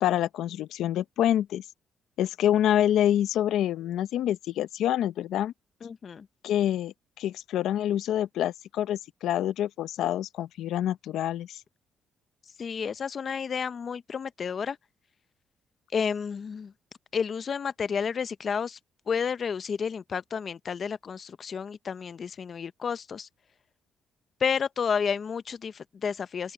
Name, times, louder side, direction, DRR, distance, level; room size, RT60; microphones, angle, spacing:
voice 1, 0.0-1.6 2.2-5.5 6.4-11.6, left 11 dB, 80° left, 0.8 m, -27 dB
voice 2, 5.8-6.3 12.6-14.8 15.9-16.7 17.1-18.8 19.1-23.3 24.4-26.5, left 6 dB, 50° left, 0.7 m, -31 dB
open air
cardioid pair, 90°, 0 cm